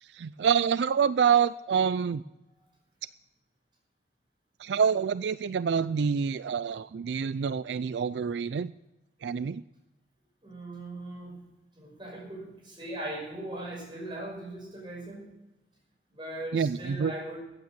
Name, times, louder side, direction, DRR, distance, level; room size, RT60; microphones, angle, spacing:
voice 1, 0.0-2.2 4.6-8.7 9.2-9.6 16.5-17.1, right 7 dB, 80° right, 16 dB, 0.4 m, -27 dB
voice 2, 10.4-11.4 11.8-15.3 16.1-17.4, right 1 dB, 25° right, 0 dB, 5.3 m, -39 dB
15.0 x 8.8 x 7.3 m, 0.98 s
head